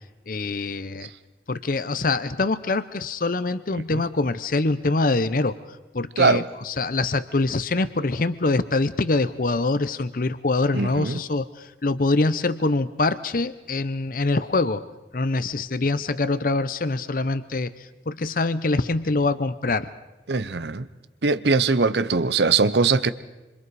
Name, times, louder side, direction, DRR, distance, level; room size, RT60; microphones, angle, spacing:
voice 1, 0.3-1.1 1.5-5.5 5.9-14.8 15.1-17.7 18.1-19.9, left 3 dB, 50° left, 14 dB, 0.7 m, -24 dB
voice 2, 10.7-11.2 20.3-20.9 21.2-23.1, right 4 dB, 75° right, 14 dB, 0.8 m, -21 dB
27.0 x 26.5 x 4.8 m, 1.1 s
head